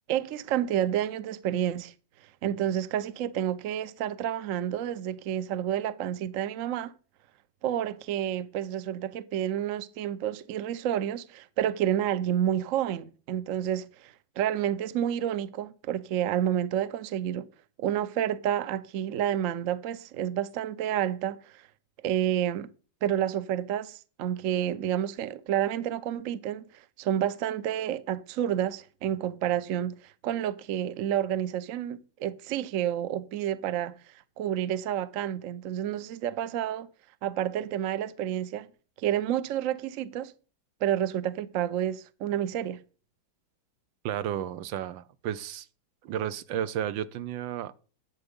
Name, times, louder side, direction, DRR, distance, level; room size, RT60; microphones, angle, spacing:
voice 1, 0.1-1.9 2.4-6.9 7.6-17.5 17.8-21.7 22.0-22.7 23.0-34.0 34.4-36.9 37.2-38.7 39.0-40.3 40.8-42.8, right 10 dB, 60° right, 0.8 m, -29 dB
voice 2, 44.0-45.7 46.0-47.7, right 10 dB, 85° right, 1.5 m, -32 dB
11.5 x 8.0 x 5.3 m
omnidirectional pair, 2.0 m